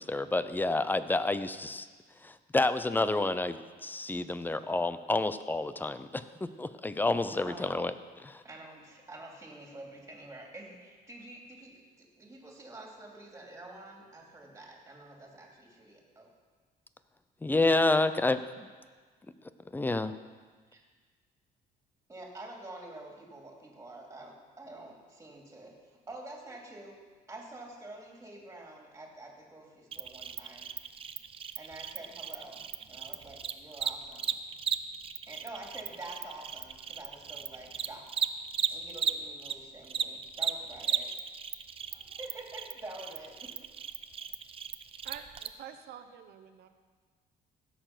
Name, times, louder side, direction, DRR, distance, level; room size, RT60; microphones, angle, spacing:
voice 1, 0.0-1.9 2.2-7.9 8.2-8.4 17.4-18.7 19.7-20.1, left 2 dB, 10° left, 13 dB, 0.5 m, -29 dB
voice 2, 7.3-7.6 8.4-16.3 20.7-20.8 22.1-25.7 26.1-27.0 27.3-30.7 31.6-32.6 32.9-34.3 35.3-38.1 38.7-41.1 42.2-43.5, right 2 dB, 15° right, 0 dB, 2.8 m, -47 dB
Cricket, 29.9-39.5 39.8-45.5, right 7 dB, 35° right, 0.6 m, -35 dB
voice 3, 45.0-46.7, right 9 dB, 70° right, 7 dB, 1.1 m, -47 dB
16.0 x 6.8 x 6.0 m, 1.5 s
cardioid pair, 110°, 17 cm